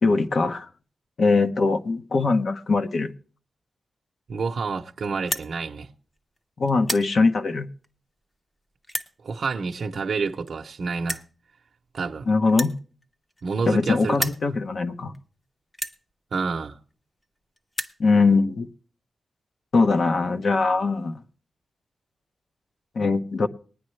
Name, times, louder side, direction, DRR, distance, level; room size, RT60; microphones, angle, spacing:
voice 1, 0.0-0.7 1.2-3.1 6.6-7.7 12.3-12.7 13.7-15.1 18.0-18.7 19.7-21.2 23.0-23.5, left 3 dB, 55° left, 0.8 m, -21 dB
voice 2, 4.3-5.9 9.2-11.2 11.9-12.3 13.4-14.3 16.3-16.8, right 4 dB, 60° right, 0.7 m, -28 dB
sound 1, 5.2-5.5 6.2-6.4 6.7-7.1 7.8-7.9 8.8-9.1 10.2-10.3 10.5-10.6 11.1-11.3 12.5-13.8 14.1-14.4 15.1-15.2 15.7-16.0 16.9-17.0 17.2-17.3 17.6-18.0, equal, 15° left, 0.7 m, -31 dB
20.0 x 9.8 x 3.2 m
wide cardioid pair, 170°, 0 cm